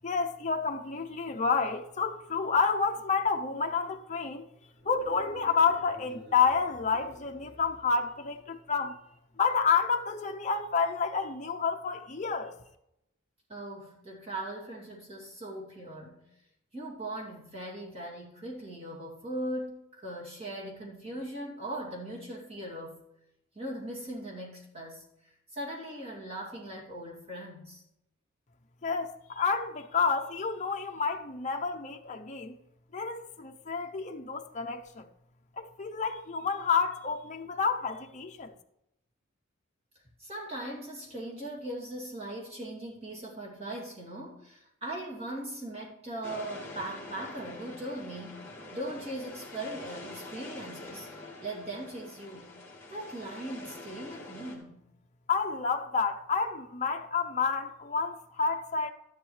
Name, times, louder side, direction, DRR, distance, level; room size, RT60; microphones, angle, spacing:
voice 1, 0.0-4.5 4.8-9.0 9.4-12.6 28.8-32.6 32.9-35.1 35.6-38.5 55.3-58.9, left 5 dB, 35° left, 0.6 m, -29 dB
sound 1, 4.7-8.3, left 1 dB, 65° right, 4.0 m, -52 dB
voice 2, 13.5-16.2 16.7-23.0 23.5-27.8 40.2-51.1 51.4-52.5 52.9-54.8, right 1 dB, 30° right, 2.7 m, -39 dB
sound 2, 46.2-54.6, left 2 dB, 10° left, 2.1 m, -45 dB
12.5 x 11.0 x 3.3 m
head